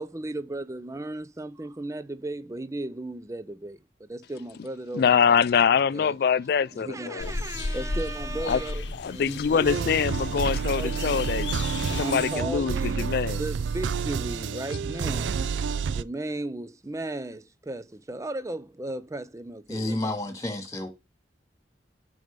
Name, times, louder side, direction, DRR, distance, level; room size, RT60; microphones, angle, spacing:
voice 1, 0.0-5.0 5.9-6.2 6.7-9.9 10.8-11.2 12.0-15.4 15.9-20.0, right 2 dB, 15° right, 0.6 m, -35 dB
voice 2, 4.9-7.3 8.5-8.6 9.0-13.4, left 6 dB, 55° left, 0.3 m, -24 dB
sound 1, 7.2-12.4, left 3 dB, 70° left, 0.9 m, -34 dB
sound 2, 9.6-16.0, right 5 dB, 80° right, 0.4 m, -29 dB
voice 3, 19.7-20.9, left 1 dB, 20° left, 2.1 m, -30 dB
6.3 x 5.5 x 5.2 m
head